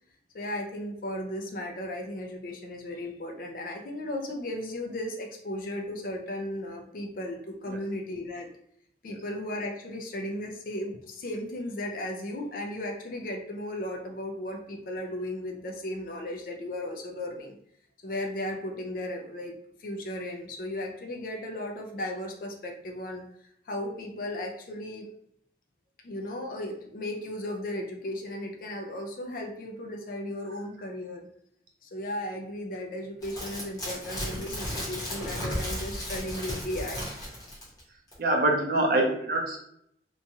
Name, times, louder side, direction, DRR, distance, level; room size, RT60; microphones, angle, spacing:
voice 1, 0.3-8.5 9.0-17.6 18.0-19.5 19.8-23.2 23.7-25.1 26.0-31.3 31.8-37.0, left 1 dB, 50° left, 2 dB, 0.4 m, -35 dB
sound 1, 33.2-37.8 38.1-38.2, equal, 20° left, 1.0 m, -34 dB
voice 2, 38.2-39.6, right 2 dB, 55° right, 0 dB, 0.6 m, -25 dB
3.0 x 2.2 x 2.7 m, 0.71 s
head